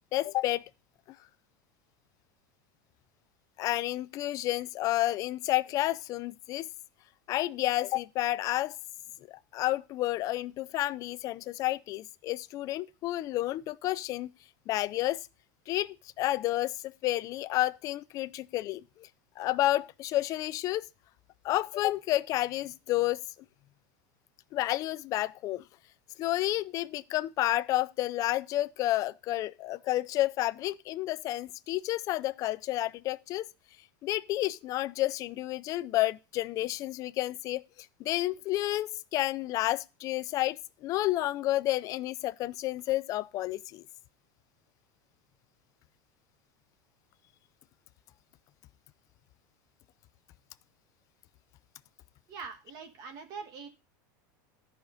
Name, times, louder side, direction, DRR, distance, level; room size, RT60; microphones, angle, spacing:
voice 1, 0.1-0.7 3.6-6.7 7.3-8.7 9.3-14.3 14.7-15.2 15.7-19.1 19.4-20.9 21.4-23.2 24.5-25.6 26.2-33.5 34.0-37.6 38.0-40.6 40.8-43.8, left 15 dB, 30° left, 0.4 m, -30 dB
voice 2, 52.3-53.7, right 5 dB, 35° right, 1.5 m, -43 dB
13.0 x 5.7 x 5.0 m
supercardioid pair, 160°, 11 cm